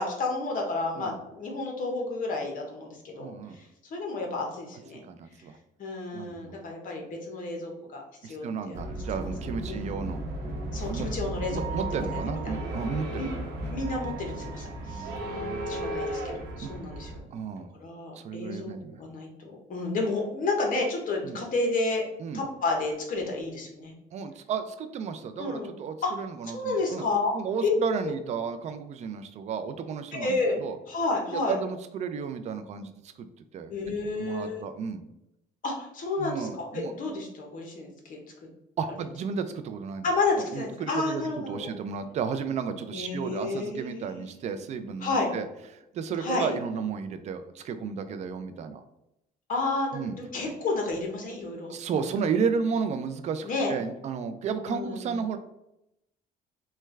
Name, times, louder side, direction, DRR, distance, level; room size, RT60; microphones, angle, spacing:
voice 1, 0.0-5.0 5.8-8.8 9.2-9.3 9.7-10.0 10.7-12.6 13.2-13.3 13.7-17.2 17.8-19.3 19.7-22.0 22.3-23.9 25.4-25.7 26.0-26.1 26.5-27.3 27.6-27.7 30.1-30.6 30.9-31.6 33.7-34.6 35.6-38.2 40.0-41.7 42.9-44.3 45.0-45.3 46.2-46.5 49.5-51.7 53.4-53.7 54.7-55.1, left 3 dB, 55° left, 1 dB, 1.0 m, -31 dB
voice 2, 3.2-3.6 5.1-5.6 6.1-6.6 8.2-10.2 10.9-11.1 11.5-13.3 14.9-15.8 16.6-16.7 17.3-17.7 18.2-19.0 21.2-21.4 22.2-22.5 24.1-27.0 27.3-30.8 31.3-33.3 33.5-33.7 34.2-35.0 36.2-36.9 38.8-40.1 40.4-45.5 45.9-48.8 49.9-50.2 51.7-55.4, right 6 dB, 45° right, 9 dB, 0.4 m, -33 dB
sound 1, 8.7-17.2, right 1 dB, 85° right, 0.8 m, -34 dB
3.3 x 2.2 x 3.1 m, 0.85 s
cardioid pair, 110°, 17 cm